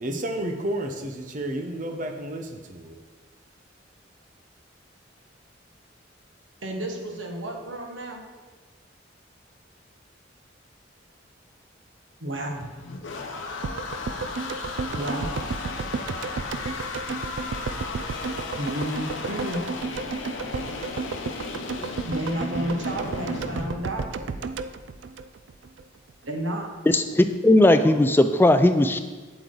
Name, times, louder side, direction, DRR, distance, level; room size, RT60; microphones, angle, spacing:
voice 1, 0.0-3.0, right 1 dB, 40° right, 5 dB, 0.8 m, -31 dB
voice 2, 6.6-8.2 12.2-12.7 14.9-15.4 18.6-19.6 22.1-24.3 26.3-26.7, right 1 dB, 85° right, 2 dB, 1.4 m, -31 dB
sound 1, 12.5-23.7, left 3 dB, 80° left, 0.9 m, -35 dB
sound 2, 13.6-25.8 26.1-26.2, right 4 dB, 70° right, 0.4 m, -33 dB
voice 3, 26.9-29.0, left 1 dB, 10° left, 9 dB, 0.4 m, -18 dB
8.4 x 8.1 x 3.9 m, 1.3 s
head